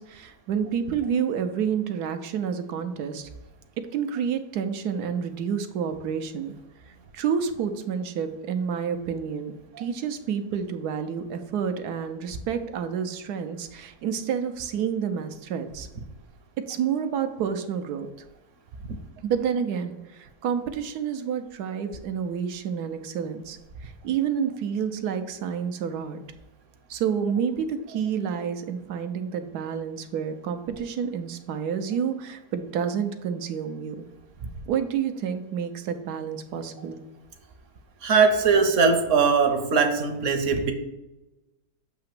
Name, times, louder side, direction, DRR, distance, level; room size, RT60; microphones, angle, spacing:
voice 1, 0.0-3.3 3.8-6.6 6.9-15.9 16.7-18.1 19.2-26.2 26.9-34.0 34.7-37.0, right 7 dB, 85° right, 8 dB, 1.2 m, -29 dB
voice 2, 38.0-40.7, right 5 dB, 60° right, 6 dB, 1.1 m, -21 dB
7.8 x 2.8 x 6.0 m, 1.0 s
omnidirectional pair, 1.6 m